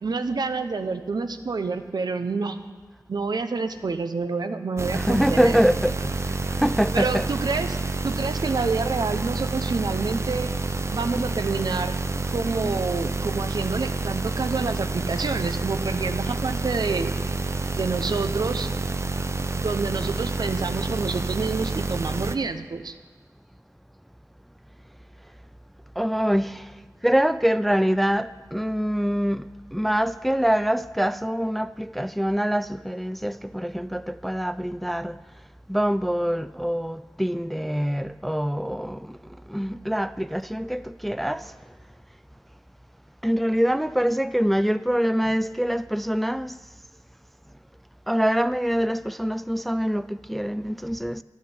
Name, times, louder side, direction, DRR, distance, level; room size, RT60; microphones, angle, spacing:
voice 1, 0.0-2.6 3.1-5.6 6.9-10.5 10.9-11.9 12.3-17.1 17.7-18.7 19.6-22.9, right 4 dB, 80° right, 0.8 m, -28 dB
sound 1, 4.8-22.3, right 3 dB, 40° right, 0.6 m, -28 dB
voice 2, 4.9-7.3 26.0-26.7 27.0-35.2 35.7-39.2 39.5-41.5 43.2-46.6 48.1-51.2, equal, ahead, 0.3 m, -24 dB
11.5 x 6.5 x 9.4 m
wide cardioid pair, 65°, 7 cm